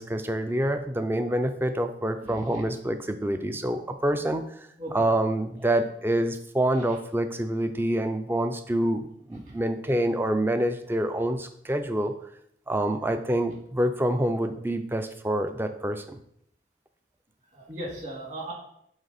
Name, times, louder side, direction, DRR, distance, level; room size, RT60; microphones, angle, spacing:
voice 1, 0.0-4.5 4.9-12.1 12.7-16.2, right 1 dB, 10° right, 8 dB, 0.4 m, -27 dB
voice 2, 2.2-2.6 4.8-4.9 9.5-9.6 17.5-18.5, right 1 dB, 40° right, -2 dB, 2.1 m, -37 dB
7.9 x 4.1 x 4.1 m, 0.71 s
head